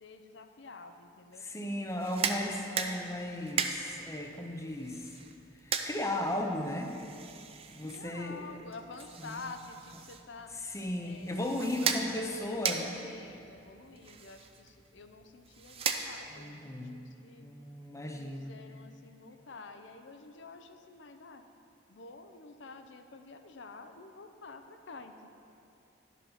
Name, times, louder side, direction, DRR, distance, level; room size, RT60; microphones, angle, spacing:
voice 1, 0.0-1.5 2.0-2.4 7.8-10.5 11.0-17.5 18.1-21.4 21.9-25.3, left 3 dB, 70° left, 7 dB, 0.6 m, -49 dB
voice 2, 1.4-5.2 5.6-6.9 7.7-8.5 9.2-9.4 10.5-13.0 16.3-17.0 17.4-18.5, left 1 dB, 15° left, 3 dB, 0.6 m, -36 dB
sound 1, 1.9-16.5, right 6 dB, 30° right, 0.4 m, -38 dB
11.5 x 5.5 x 5.7 m, 2.7 s
head